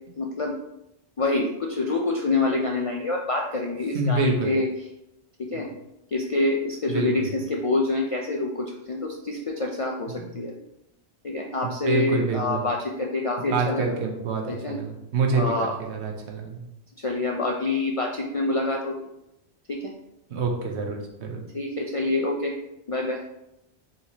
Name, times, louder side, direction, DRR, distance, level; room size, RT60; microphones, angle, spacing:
voice 1, 0.2-0.6 1.2-4.9 5.4-5.7 6.1-10.5 11.2-13.9 14.5-14.8 15.3-15.7 17.0-18.9 19.7-19.9 21.5-22.5 22.9-23.2, left 2 dB, 60° left, 0 dB, 0.3 m, -26 dB
voice 2, 3.9-4.5 5.5-5.6 6.9-7.1 10.1-10.3 11.6-12.6 13.5-16.6 20.3-21.4, right 4 dB, 85° right, 2 dB, 1.0 m, -27 dB
4.3 x 3.8 x 2.8 m, 0.86 s
omnidirectional pair, 1.1 m